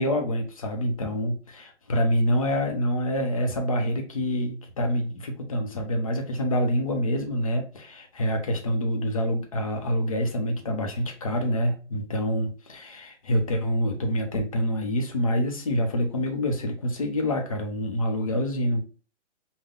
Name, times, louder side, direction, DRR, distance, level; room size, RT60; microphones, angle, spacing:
voice 1, 0.0-18.8, equal, 30° left, 3 dB, 0.7 m, -26 dB
5.6 x 2.2 x 3.7 m, 0.37 s
hypercardioid pair, 175°, 37 cm